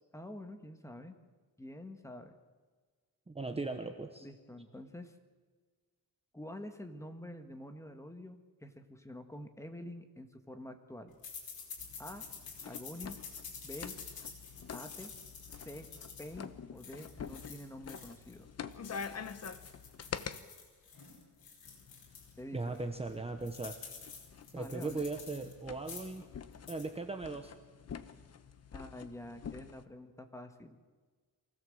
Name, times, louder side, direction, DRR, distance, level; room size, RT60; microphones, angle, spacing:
voice 1, 0.1-1.2 1.6-2.4 4.2-5.2 6.3-11.2 12.0-12.3 12.6-13.2 13.6-14.0 14.7-15.2 15.6-15.9 16.2-18.5 22.4-22.8 24.5-25.0 28.7-30.8, left 1 dB, 10° left, 6 dB, 1.5 m, -47 dB
voice 2, 3.3-4.3 22.5-23.8 24.5-26.3 26.7-27.5, right 3 dB, 15° right, 6 dB, 1.0 m, -38 dB
sound 1, 11.2-18.4 18.7-22.3 22.7-22.8 23.1-25.5 25.8-26.2 26.5-26.9, left 5 dB, 65° left, 4.9 m, -49 dB
sound 2, 11.8-20.4 21.6-29.8, left 6 dB, 40° left, 1.0 m, -47 dB
24.0 x 17.0 x 7.8 m, 1.4 s
wide cardioid pair, 175°, 37 cm